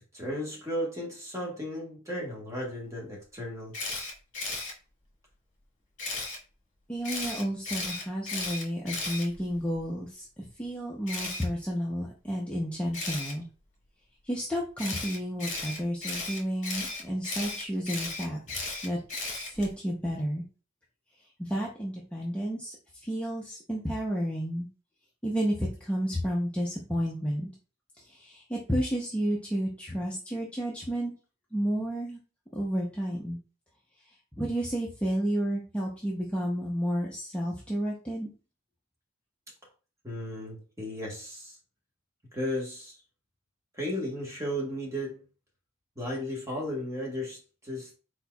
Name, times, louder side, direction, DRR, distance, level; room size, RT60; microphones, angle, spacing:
voice 1, 0.1-3.8 40.0-41.6 42.3-43.0 43.7-45.2 45.9-47.9, equal, 15° right, 1.3 m, -35 dB
Camera, 3.7-4.7 6.0-6.4 7.0-9.8 11.1-11.4 12.9-13.3 14.8-19.7, left 3 dB, 40° left, 1.4 m, -35 dB
voice 2, 6.9-13.5 14.2-19.0 19.3-20.4 21.4-22.8 23.0-24.7 25.2-27.5 28.0-31.1 31.5-32.2 32.5-33.4 34.4-38.3, equal, 5° left, 0.6 m, -31 dB
4.4 x 4.3 x 2.3 m
head